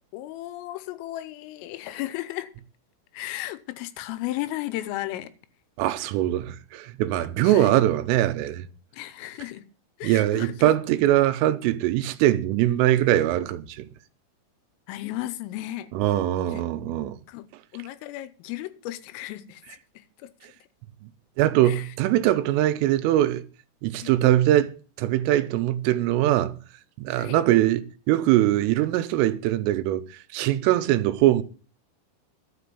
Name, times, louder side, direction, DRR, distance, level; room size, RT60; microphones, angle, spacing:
voice 1, 0.1-2.5 3.1-5.3 7.4-7.8 8.9-9.7 10.0-10.7 14.9-15.9 16.5-16.6 17.3-17.5 17.7-19.6 20.0-20.3 21.6-21.9 24.0-24.2 27.2-27.4, left 15 dB, 85° left, 3.5 m, -35 dB
voice 2, 5.8-8.7 10.0-13.9 15.9-17.2 21.4-23.4 23.8-24.7 25.0-26.6 27.0-30.0 30.3-31.4, right 14 dB, 90° right, 3.4 m, -22 dB
12.0 x 6.0 x 8.4 m
omnidirectional pair, 5.7 m